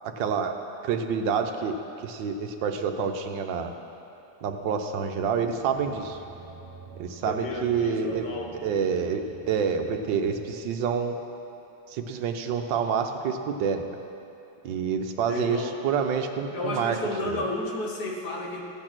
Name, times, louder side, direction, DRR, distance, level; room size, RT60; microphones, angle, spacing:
voice 1, 0.0-0.5 0.8-1.8 2.0-3.7 4.4-6.2 7.0-8.3 8.6-11.2 11.9-13.8 14.6-15.6 15.8-17.0 17.2-17.4, right 6 dB, 70° right, 5 dB, 1.5 m, -27 dB
sound 1, 5.4-10.5, right 4 dB, 15° right, 0.9 m, -47 dB
voice 2, 7.2-8.5 15.2-15.8 16.5-18.6, left 2 dB, 55° left, -1 dB, 1.8 m, -32 dB
15.0 x 8.8 x 6.1 m, 2.8 s
omnidirectional pair, 2.2 m